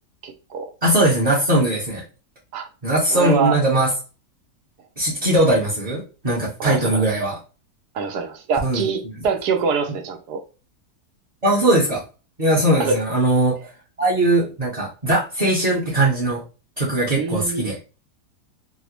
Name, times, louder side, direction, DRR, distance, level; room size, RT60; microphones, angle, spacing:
voice 1, 0.2-0.7 2.5-2.7 3.1-3.6 6.6-7.1 7.9-10.4 12.8-13.0 17.1-17.8, right 5 dB, 85° right, 1.3 m, -24 dB
voice 2, 0.8-2.0 2.8-3.9 5.0-7.4 8.6-8.8 11.4-12.0 12.4-13.6 14.0-16.4 16.8-17.8, right 1 dB, 30° right, 0.9 m, -20 dB
4.1 x 2.0 x 2.9 m
omnidirectional pair, 1.7 m